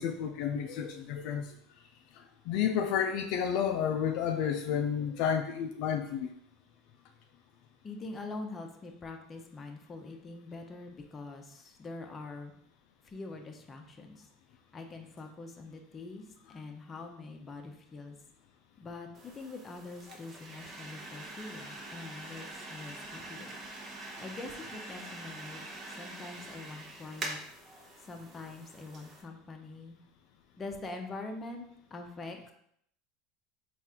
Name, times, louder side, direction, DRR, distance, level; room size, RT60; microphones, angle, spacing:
voice 1, 0.0-1.5 2.1-6.3, left 8 dB, 65° left, 5 dB, 0.3 m, -31 dB
voice 2, 7.8-12.5 13.0-14.3 14.7-18.2 18.8-23.6 24.2-25.7 26.0-27.4 27.7-30.0 30.6-31.7 31.9-32.5, left 3 dB, 25° left, 4 dB, 0.7 m, -44 dB
sound 1, 19.1-29.2, right 2 dB, 35° right, 0.9 m, -45 dB
4.2 x 2.5 x 3.6 m, 0.70 s
supercardioid pair, 105°, 0 cm